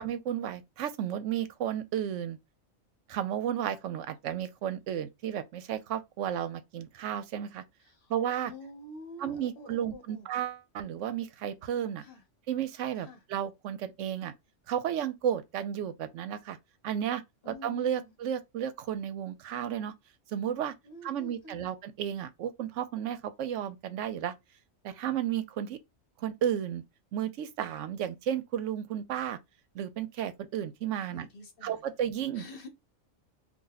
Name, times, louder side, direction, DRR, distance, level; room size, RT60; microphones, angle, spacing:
voice 1, 0.0-2.4 3.1-7.6 8.1-8.5 9.2-12.0 12.5-14.3 14.7-16.6 16.8-19.9 20.3-20.7 21.0-24.3 24.8-25.8 26.2-26.8 27.1-29.4 29.7-31.3 31.6-32.4, right 10 dB, 80° right, 0.9 m, -33 dB
voice 2, 7.8-10.3 12.0-12.2 13.0-13.2 17.4-18.1 20.8-21.7 31.1-31.8 32.3-32.7, left 2 dB, 55° left, 1.0 m, -48 dB
2.7 x 2.4 x 3.8 m
omnidirectional pair, 1.3 m